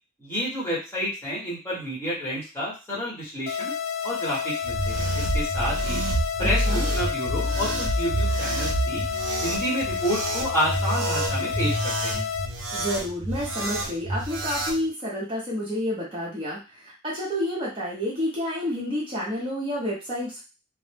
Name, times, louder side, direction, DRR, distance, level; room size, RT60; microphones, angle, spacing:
voice 1, 0.2-3.7 4.0-6.0 6.4-9.0 9.4-12.2, equal, 10° left, -7 dB, 1.0 m, -30 dB
sound 1, 3.5-12.5, left 7 dB, 70° left, 0.3 m, -30 dB
sound 2, 4.6-14.8, right 1 dB, 65° right, 0.5 m, -28 dB
voice 2, 6.4-6.9 12.7-20.4, equal, 25° right, -6 dB, 0.7 m, -29 dB
2.1 x 2.0 x 3.2 m, 0.31 s
head